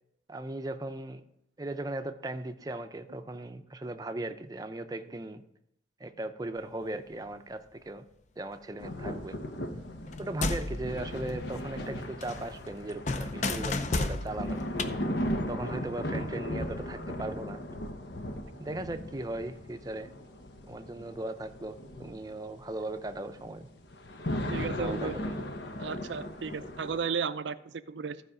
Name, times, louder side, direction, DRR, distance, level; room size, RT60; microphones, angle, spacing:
voice 1, 0.3-1.3 1.6-5.4 6.0-8.1 8.4-9.4 10.2-14.6 15.5-17.6 18.6-20.1 20.7-23.7 24.8-25.5, right 2 dB, 20° right, 8 dB, 0.5 m, -38 dB
sound 1, 8.8-27.0, left 1 dB, 80° left, 1.0 m, -37 dB
sound 2, 10.1-11.9 12.2-14.9, left 3 dB, 40° left, 0.6 m, -33 dB
voice 2, 24.5-25.1 25.8-28.2, right 5 dB, 85° right, 13 dB, 0.5 m, -34 dB
15.0 x 4.9 x 5.0 m, 0.79 s
head